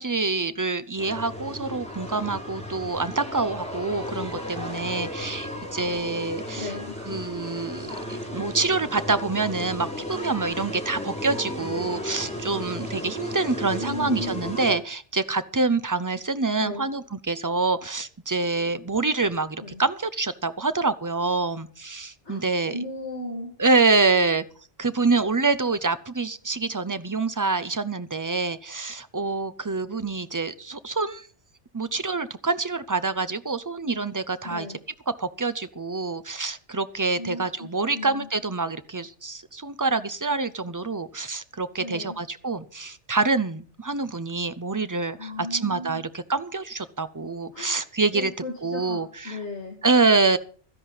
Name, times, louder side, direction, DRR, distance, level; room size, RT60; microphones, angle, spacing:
voice 1, 0.0-6.8 7.0-22.8 23.6-24.4 24.8-31.3 31.7-34.7 35.1-48.3 48.6-49.4 49.8-50.4, right 3 dB, 25° right, 13 dB, 0.5 m, -26 dB
sound 1, 1.0-14.7, left 1 dB, 5° left, 3.6 m, -34 dB
voice 2, 6.6-6.9 13.8-14.4 16.6-16.9 19.6-19.8 22.2-23.5 34.4-34.8 37.2-37.7 37.9-38.3 41.8-42.2 45.2-46.0 47.5-47.8 48.1-49.8, left 2 dB, 75° left, -2 dB, 2.8 m, -35 dB
13.0 x 11.0 x 5.6 m, 0.43 s
omnidirectional pair, 1.2 m